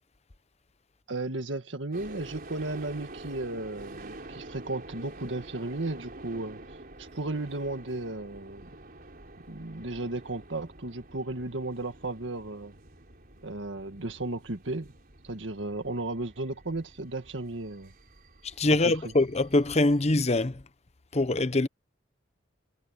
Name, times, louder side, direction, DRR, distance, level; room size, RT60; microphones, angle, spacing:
voice 1, 1.1-6.6 7.0-8.7 9.5-12.7 13.4-14.9 15.2-17.9 18.8-18.9, right 2 dB, 80° right, 1.7 m, -34 dB
sound 1, 1.9-20.4, right 2 dB, 50° right, 3.8 m, -48 dB
voice 2, 18.6-20.6 21.1-21.7, left 2 dB, 35° left, 0.9 m, -24 dB
head